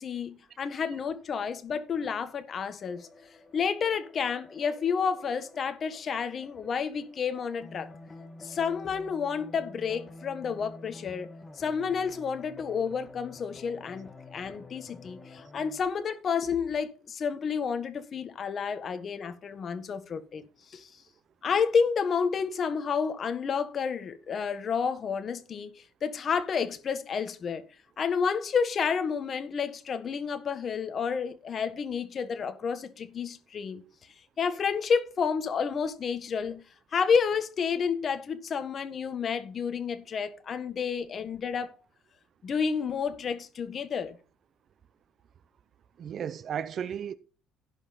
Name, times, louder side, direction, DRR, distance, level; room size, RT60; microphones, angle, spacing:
voice 1, 0.0-3.1 3.5-7.9 8.4-11.3 11.5-20.9 21.4-25.7 26.0-27.6 28.0-33.8 34.4-36.6 36.9-41.8 42.4-44.2, left 6 dB, 40° left, 1.5 m, -30 dB
sound 1, 2.8-15.8, left 2 dB, 20° left, 2.0 m, -49 dB
voice 2, 46.0-47.1, right 8 dB, 45° right, 0.8 m, -34 dB
16.5 x 5.7 x 4.1 m
cardioid pair, 125°, 0 cm